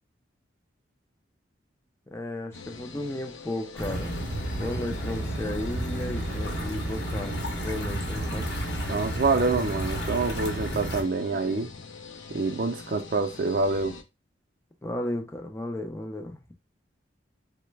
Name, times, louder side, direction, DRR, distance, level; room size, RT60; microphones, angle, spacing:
voice 1, 2.1-4.2 4.6-7.3 7.6-8.5 14.8-16.4, left 1 dB, 15° left, 0.4 m, -34 dB
sound 1, 2.5-14.0, left 4 dB, 85° left, 0.5 m, -44 dB
sound 2, 3.8-11.0, right 1 dB, 60° left, 0.9 m, -31 dB
voice 2, 8.9-11.7 12.3-14.0, right 3 dB, 50° right, 0.5 m, -26 dB
3.1 x 2.1 x 3.2 m
head